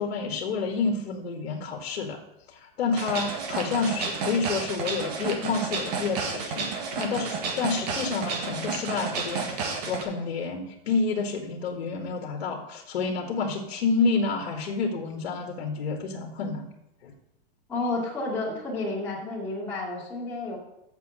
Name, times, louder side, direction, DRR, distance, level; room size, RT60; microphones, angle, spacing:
voice 1, 0.0-2.2 2.5-6.7 7.0-16.7 17.0-17.1, left 4 dB, 75° left, 1 dB, 1.9 m, -29 dB
sound 1, 2.9-10.0, right 4 dB, 40° right, 1.7 m, -31 dB
voice 2, 17.7-20.6, left 2 dB, 5° left, -7 dB, 2.7 m, -31 dB
8.4 x 6.9 x 6.7 m, 0.86 s
supercardioid pair, 170°, 30 cm